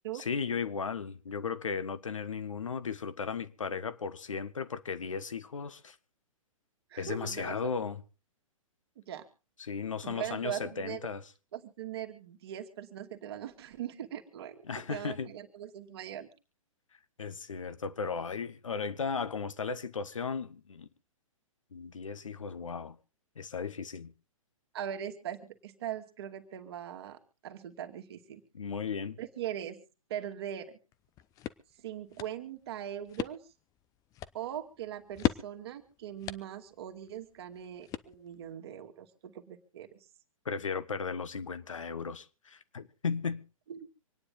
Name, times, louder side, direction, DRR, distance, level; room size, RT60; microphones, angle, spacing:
voice 1, 0.1-6.0 7.0-8.0 9.6-11.2 14.7-15.3 17.2-20.9 21.7-23.0 23.4-24.1 28.5-29.2 40.4-43.4, left 5 dB, 65° left, 1.2 m, -36 dB
voice 2, 6.9-7.7 9.0-9.3 10.0-11.1 11.5-16.3 24.7-27.2 27.4-28.4 29.2-29.8 30.1-30.8 31.8-33.4 34.3-40.0 43.7-43.9, right 10 dB, 45° right, 2.3 m, -40 dB
sound 1, 30.9-38.5, left 12 dB, 20° left, 0.8 m, -39 dB
26.0 x 9.9 x 3.9 m
figure-of-eight pair, 115°, 18 cm